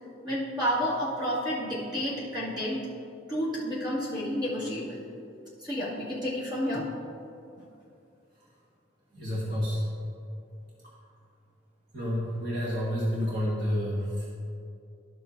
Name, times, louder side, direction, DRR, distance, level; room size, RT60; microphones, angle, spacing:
voice 1, 0.2-2.9 3.3-5.0 5.6-6.9, equal, 20° right, -8 dB, 2.0 m, -30 dB
voice 2, 9.1-9.8 11.9-14.3, equal, 55° right, -7 dB, 1.6 m, -29 dB
12.0 x 7.6 x 2.6 m, 2.5 s
head